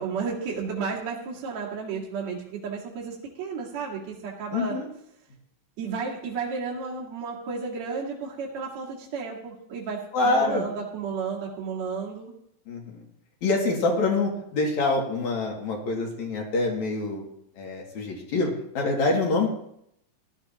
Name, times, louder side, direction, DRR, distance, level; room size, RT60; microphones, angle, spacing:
voice 1, 0.0-4.8 5.8-12.3, right 5 dB, 55° right, -4 dB, 3.0 m, -33 dB
voice 2, 4.5-4.9 10.1-10.7 12.7-13.0 13.4-17.2 17.6-19.5, left 3 dB, 55° left, -1 dB, 3.4 m, -25 dB
18.5 x 12.5 x 2.9 m, 0.73 s
omnidirectional pair, 4.0 m